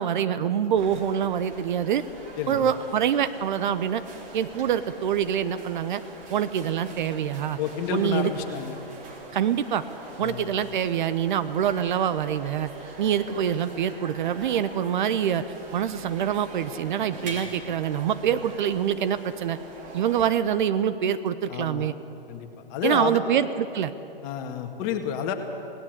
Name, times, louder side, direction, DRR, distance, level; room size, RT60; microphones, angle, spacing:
voice 1, 0.0-2.0 2.5-4.0 4.3-6.0 6.3-7.6 7.9-8.3 9.3-9.8 10.2-12.7 13.0-15.4 15.7-19.6 19.9-21.9 22.8-23.9, right 9 dB, 55° right, 13 dB, 0.9 m, -25 dB
sound 1, 0.7-20.2, right 2 dB, 25° right, 3.1 m, -43 dB
voice 2, 2.4-2.7 7.6-8.8 10.2-10.5 17.2-17.4 21.5-21.9 22.3-23.2 24.2-25.3, left 8 dB, 35° left, 5 dB, 2.0 m, -30 dB
18.0 x 18.0 x 8.0 m, 2.8 s
hypercardioid pair, 125°, 29 cm